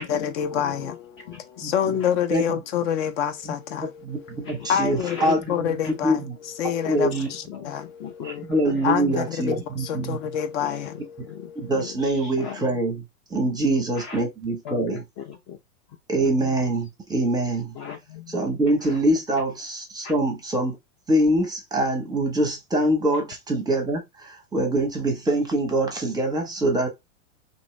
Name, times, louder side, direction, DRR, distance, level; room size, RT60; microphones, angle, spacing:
voice 1, 0.0-6.2 6.6-8.5 8.8-11.7, left 9 dB, 60° left, 0.7 m, -28 dB
voice 2, 0.5-1.0 1.3-1.4 2.0-2.1 4.4-5.3 6.8-7.7 8.0-8.9 9.9-10.1 10.6-12.6 13.9-14.2 14.6-15.6 16.1-16.5 17.7-18.4 18.8-19.0 20.0-20.1, left 7 dB, 30° left, 0.4 m, -39 dB
voice 3, 4.0-5.8 6.0-6.4 6.9-7.3 8.2-10.2 11.6-13.0 13.3-15.0 16.1-17.7 18.3-20.8 21.1-26.9, right 1 dB, 10° right, 0.7 m, -24 dB
3.0 x 2.7 x 3.0 m
hypercardioid pair, 125°, 41 cm